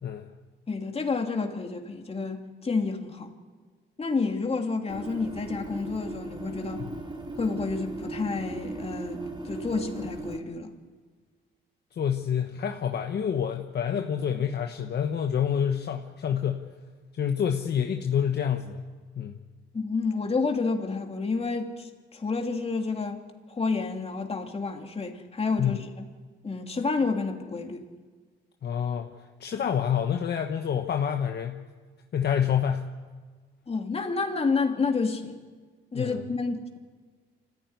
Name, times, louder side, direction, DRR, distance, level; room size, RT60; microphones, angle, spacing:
voice 1, 0.0-0.3 6.8-6.9 12.0-16.7 17.1-18.8 19.1-19.4 25.6-25.8 28.6-29.1 29.4-31.6 32.1-32.9 35.9-36.2, left 8 dB, 55° left, 1.3 m, -27 dB
voice 2, 0.7-3.3 4.0-6.8 7.4-10.7 19.7-23.2 23.5-25.8 26.4-27.8 33.7-35.4 35.9-36.8, left 4 dB, 30° left, 2.9 m, -29 dB
sound 1, 4.9-10.4, right 2 dB, 25° right, 2.4 m, -37 dB
25.5 x 15.0 x 9.7 m
cardioid pair, 90°, 20 cm